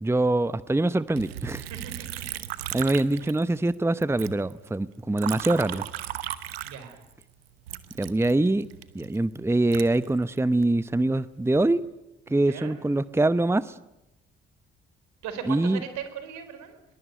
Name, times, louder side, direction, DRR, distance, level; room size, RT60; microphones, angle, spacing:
voice 1, 0.0-1.6 2.7-5.8 8.0-8.7 8.9-11.8 12.3-13.8 15.5-15.8, right 2 dB, 10° right, 17 dB, 0.9 m, -24 dB
Liquid, 1.2-3.7 4.0-7.2 7.7-10.7 11.2-11.8, right 12 dB, 90° right, 1.1 m, -37 dB
voice 2, 1.7-2.2 2.5-2.9 6.6-7.0 12.3-12.8 15.2-16.8, right 8 dB, 70° right, 9 dB, 4.3 m, -39 dB
23.0 x 22.0 x 9.4 m, 0.91 s
hypercardioid pair, 45°, 29 cm